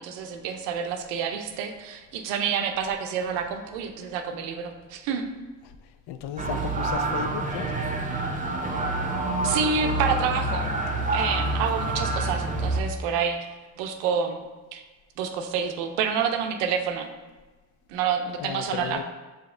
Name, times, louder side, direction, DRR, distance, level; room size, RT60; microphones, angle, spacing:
voice 1, 0.0-5.2 9.4-10.8 11.1-13.4 13.8-14.4 14.7-14.8 15.2-17.1 17.9-19.0, right 6 dB, 85° right, 6 dB, 0.6 m, -28 dB
voice 2, 6.1-7.7 18.4-19.0, left 9 dB, 65° left, 9 dB, 0.5 m, -34 dB
sound 1, 6.4-12.8, right 2 dB, 20° right, 0.8 m, -27 dB
4.9 x 2.9 x 3.6 m, 1.2 s
supercardioid pair, 65°, 43 cm